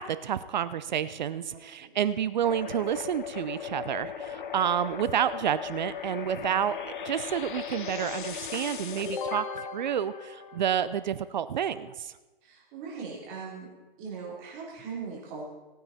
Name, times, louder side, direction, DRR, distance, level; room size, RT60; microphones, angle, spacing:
voice 1, 0.0-6.8 7.0-12.1, right 9 dB, 50° right, 15 dB, 0.6 m, -29 dB
sound 1, 2.4-11.1, left 7 dB, 55° left, 1.2 m, -37 dB
voice 2, 12.4-13.7 14.0-15.4, right 5 dB, 30° right, -3 dB, 3.4 m, -39 dB
18.0 x 9.4 x 4.1 m, 1.1 s
hypercardioid pair, 145°, 29 cm